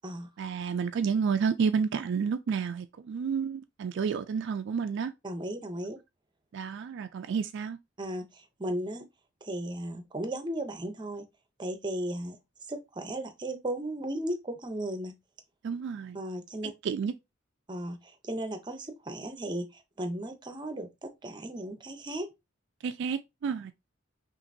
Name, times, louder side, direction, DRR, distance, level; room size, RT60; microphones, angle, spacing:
voice 1, 0.4-5.1 6.5-7.8 15.6-16.2 16.6-17.1 22.8-23.7, right 6 dB, 65° right, 0.3 m, -30 dB
voice 2, 5.2-6.0 8.0-9.1 9.4-11.2 11.6-12.4 12.7-15.1 16.1-16.7 17.7-22.3, right 1 dB, 25° right, 0.7 m, -36 dB
5.6 x 2.5 x 2.6 m
head